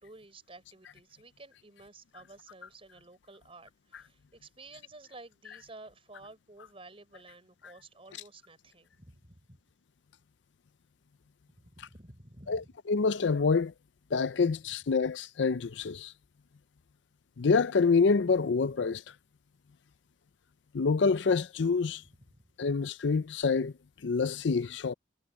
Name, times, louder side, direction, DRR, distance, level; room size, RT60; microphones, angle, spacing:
voice 1, 0.0-9.6 11.6-12.7 22.3-22.4, right 2 dB, 30° right, 5.4 m, -52 dB
voice 2, 12.9-13.7 14.1-16.1 17.4-19.0 20.7-22.0 22.6-23.7 24.0-24.9, left 4 dB, 70° left, 0.5 m, -26 dB
head